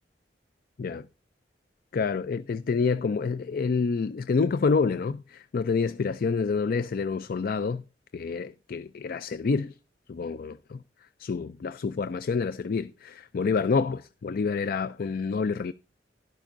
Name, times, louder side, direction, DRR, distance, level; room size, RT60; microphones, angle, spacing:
voice 1, 1.9-7.8 8.1-9.8 10.1-10.5 11.2-15.7, left 5 dB, 55° left, 0.4 m, -28 dB
12.0 x 12.0 x 2.6 m
head